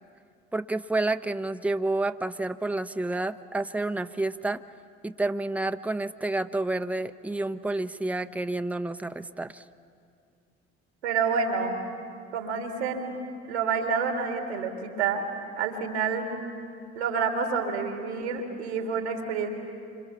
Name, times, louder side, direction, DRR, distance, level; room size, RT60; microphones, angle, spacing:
voice 1, 0.5-4.6 5.0-9.6, right 2 dB, 5° right, 10 dB, 0.9 m, -29 dB
voice 2, 11.0-11.8 12.3-13.2 13.5-15.2 15.6-16.3 16.9-19.5, right 5 dB, 90° right, 4 dB, 2.9 m, -28 dB
27.0 x 26.0 x 7.2 m, 2.3 s
hypercardioid pair, 55°, 32 cm